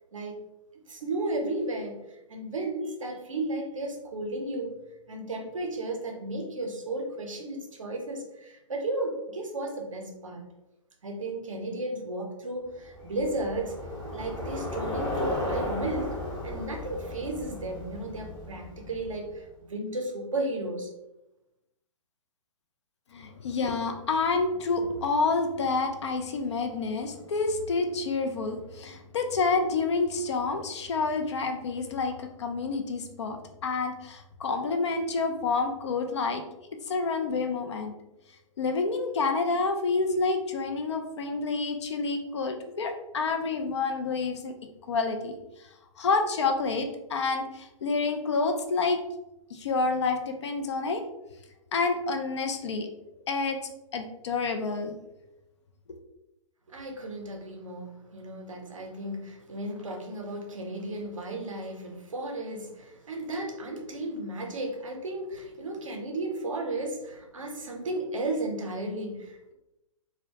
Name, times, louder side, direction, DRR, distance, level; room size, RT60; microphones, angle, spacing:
voice 1, 0.9-1.9 2.3-4.8 5.1-10.4 11.0-13.8 14.1-16.1 16.4-20.9 56.7-69.5, right 2 dB, 70° right, 2 dB, 0.6 m, -34 dB
Bicycle, 12.8-19.3, left 1 dB, 30° left, 0.9 m, -35 dB
voice 2, 23.1-36.4 36.9-37.9 38.6-45.3 45.6-45.7 46.0-49.0 49.5-51.0 51.7-52.9 53.3-53.6 53.9-54.9, left 4 dB, 60° left, 5 dB, 0.4 m, -28 dB
2.2 x 2.1 x 2.7 m, 0.92 s
figure-of-eight pair, 120°, 17 cm